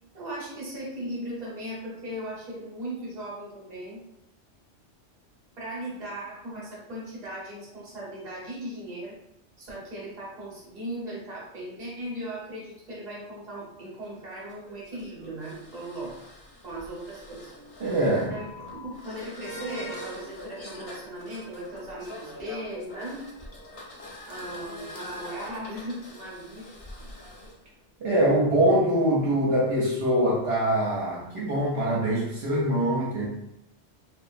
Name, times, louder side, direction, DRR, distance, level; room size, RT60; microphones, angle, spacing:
voice 1, 0.1-4.0 5.6-9.1 9.6-16.2 16.6-17.5 18.1-23.2 24.2-27.1, right 1 dB, 40° right, -5 dB, 0.9 m, -38 dB
sound 1, 13.8-27.5, left 1 dB, 50° left, 0.4 m, -43 dB
voice 2, 17.8-18.3 28.0-33.3, right 1 dB, 65° right, -6 dB, 0.8 m, -23 dB
2.7 x 2.2 x 2.4 m, 0.81 s
omnidirectional pair, 1.2 m